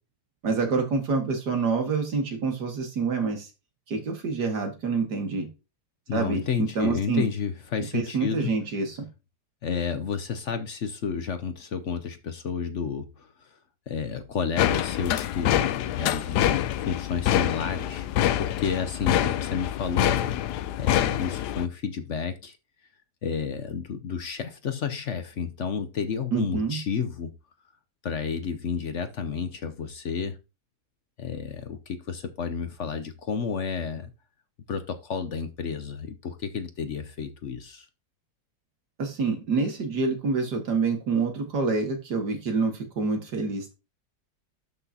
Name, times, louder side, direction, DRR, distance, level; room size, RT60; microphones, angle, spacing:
voice 1, 0.4-3.5 3.9-5.5 6.1-7.3 7.9-9.1 26.3-26.8 39.0-43.7, right 4 dB, 80° right, 2.4 m, -27 dB
voice 2, 6.1-8.5 9.6-13.5 13.9-18.1 18.4-20.4 20.8-22.6 23.2-27.3 28.0-30.4 31.2-34.1 34.7-37.9, left 6 dB, 55° left, 1.0 m, -31 dB
sound 1, 14.6-21.7, left 12 dB, 85° left, 1.2 m, -26 dB
12.0 x 6.0 x 2.8 m
omnidirectional pair, 1.7 m